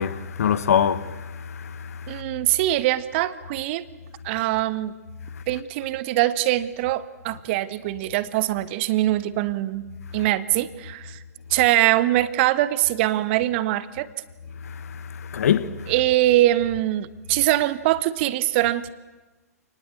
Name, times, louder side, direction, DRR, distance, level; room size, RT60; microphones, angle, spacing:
voice 1, 0.0-2.2 14.6-15.9, left 8 dB, 60° left, 1.3 m, -25 dB
voice 2, 2.1-3.8 4.2-4.9 5.5-9.9 10.1-11.2 11.5-14.1 15.9-18.9, right 15 dB, 40° right, 1.3 m, -22 dB
27.0 x 19.5 x 8.3 m
figure-of-eight pair, 110°, 9 cm